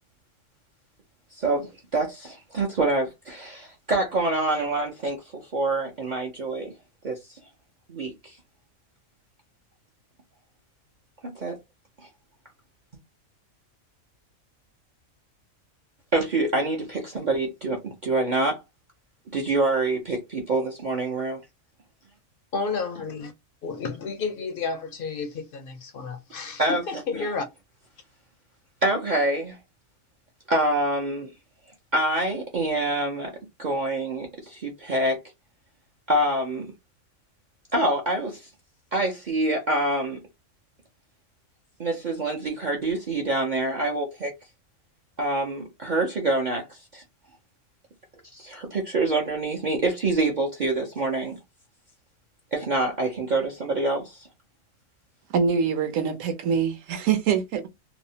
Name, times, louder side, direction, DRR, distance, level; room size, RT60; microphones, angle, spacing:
voice 1, 1.4-6.7 7.0-7.2 7.9-8.4 11.4-11.6 16.1-18.6 19.3-21.4 26.6-26.8 28.8-29.6 30.5-31.3 31.9-33.3 33.6-35.2 36.1-36.7 37.7-38.5 38.9-40.2 41.8-44.3 45.2-47.0 48.3-51.4 52.5-54.3, right 2 dB, 55° right, 0.5 m, -26 dB
voice 2, 22.5-23.3 23.6-26.6 26.9-27.5, left 4 dB, 65° left, 0.5 m, -31 dB
voice 3, 55.3-57.7, right 6 dB, 70° right, 1.0 m, -24 dB
2.7 x 2.0 x 2.6 m
omnidirectional pair, 1.5 m